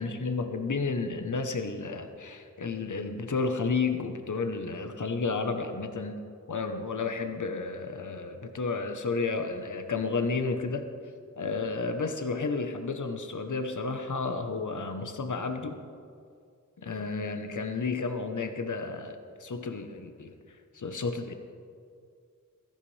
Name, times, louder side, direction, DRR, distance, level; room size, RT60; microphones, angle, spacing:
voice 1, 0.0-6.2 6.5-10.8 11.4-15.8 16.8-20.3 20.7-21.3, left 4 dB, 75° left, 6 dB, 1.0 m, -32 dB
16.0 x 14.0 x 3.3 m, 2.3 s
wide cardioid pair, 80°, 31 cm